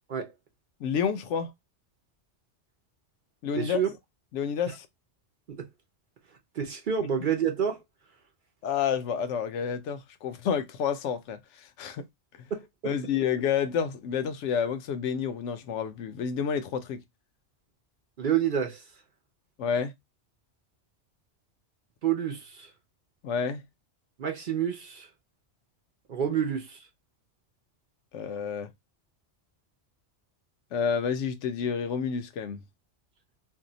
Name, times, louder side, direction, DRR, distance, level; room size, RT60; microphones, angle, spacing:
voice 1, 0.8-1.5 3.4-3.8 4.3-4.9 8.6-12.0 12.4-12.5 12.8-17.0 19.6-19.9 23.2-23.6 28.1-28.7 30.7-32.6, left 7 dB, 80° left, 0.9 m, -29 dB
voice 2, 3.5-3.9 5.5-5.7 6.5-7.8 12.5-12.9 18.2-18.8 22.0-22.7 24.2-25.1 26.1-26.8, right 8 dB, 55° right, 0.7 m, -28 dB
2.7 x 2.2 x 3.8 m
omnidirectional pair, 1.2 m